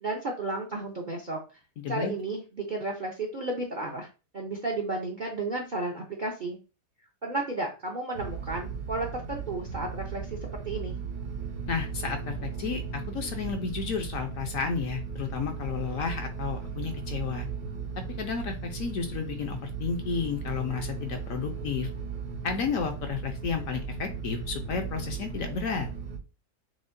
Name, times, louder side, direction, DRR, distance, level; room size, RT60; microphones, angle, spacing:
voice 1, 0.0-1.4 1.9-4.1 4.3-6.6 7.2-10.9, right 2 dB, 50° right, 0 dB, 0.5 m, -33 dB
voice 2, 1.8-2.1 11.7-17.5 18.2-21.9 22.4-25.9, left 6 dB, 65° left, 5 dB, 0.9 m, -32 dB
sound 1, 8.1-26.2, right 6 dB, 70° right, 1.2 m, -36 dB
6.2 x 2.1 x 2.6 m, 0.32 s
omnidirectional pair, 1.7 m